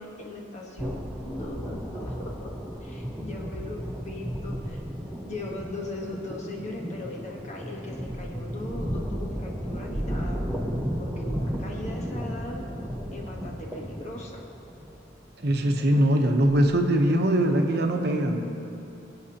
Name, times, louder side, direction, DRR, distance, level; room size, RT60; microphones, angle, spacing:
voice 1, 0.0-2.5 2.8-4.8 5.2-10.4 11.0-12.7 13.1-14.4, left 2 dB, 40° left, -1 dB, 1.2 m, -39 dB
sound 1, 0.8-16.9, equal, 5° right, 0.7 m, -34 dB
voice 2, 15.4-18.4, right 1 dB, 60° right, 4 dB, 0.9 m, -22 dB
22.5 x 8.0 x 2.9 m, 2.9 s
head